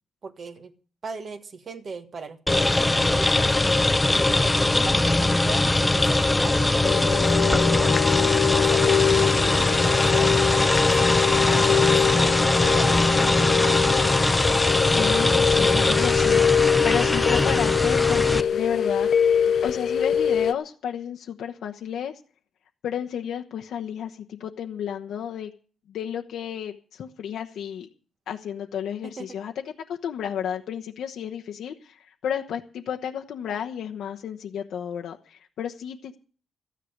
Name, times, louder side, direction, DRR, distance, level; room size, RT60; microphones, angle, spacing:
voice 1, 0.2-0.7 1.0-3.5 4.1-7.9 8.4-10.4 10.7-13.8 29.0-29.4, right 4 dB, 40° right, 9 dB, 1.5 m, -37 dB
sound 1, 2.5-18.4, left 2 dB, 10° left, 0.6 m, -21 dB
sound 2, 6.8-20.5, left 8 dB, 55° left, 0.7 m, -23 dB
voice 2, 14.9-19.1 19.6-22.1 22.8-25.5 25.9-27.9 28.3-29.7 30.0-36.2, left 9 dB, 75° left, 3 dB, 1.0 m, -32 dB
14.0 x 10.0 x 6.6 m, 0.40 s
cardioid pair, 140°, 0 cm